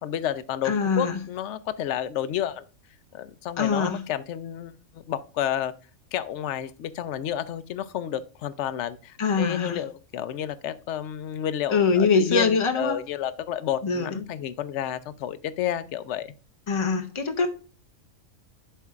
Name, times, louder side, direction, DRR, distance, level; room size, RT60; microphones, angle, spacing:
voice 1, 0.0-2.6 3.1-5.7 6.1-16.3, left 10 dB, 65° left, 0.8 m, -30 dB
voice 2, 0.6-1.2 3.6-4.0 9.2-9.8 11.7-13.0 13.8-14.2 16.7-17.5, left 5 dB, 50° left, 0.3 m, -23 dB
11.0 x 4.6 x 2.4 m
omnidirectional pair, 1.4 m